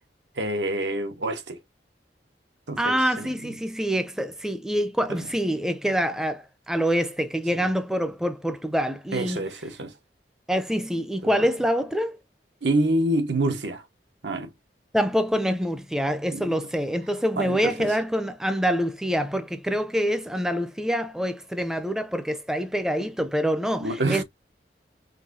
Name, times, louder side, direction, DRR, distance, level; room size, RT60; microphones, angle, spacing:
voice 1, 0.4-1.6 2.7-3.5 5.1-5.3 7.5-7.7 9.1-9.9 11.2-11.5 12.6-13.8 14.2-14.5 16.3-16.5 17.4-18.0 23.8-24.2, right 1 dB, 80° right, 1.1 m, -27 dB
voice 2, 2.8-9.4 10.5-12.2 14.9-24.2, equal, 5° right, 0.5 m, -26 dB
5.7 x 2.7 x 2.6 m
head